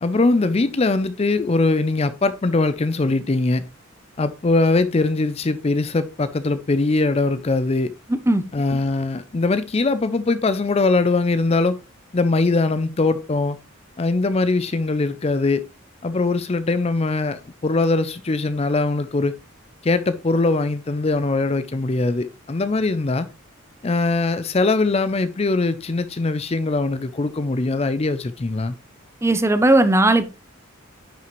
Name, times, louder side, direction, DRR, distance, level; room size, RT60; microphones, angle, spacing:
voice 1, 0.0-3.7 4.2-7.9 8.5-11.8 12.1-13.6 14.0-15.6 16.0-19.3 19.8-23.3 23.8-28.7, left 3 dB, 30° left, 0.4 m, -21 dB
voice 2, 29.2-30.3, right 2 dB, 15° right, 0.6 m, -16 dB
10.0 x 5.6 x 3.1 m
head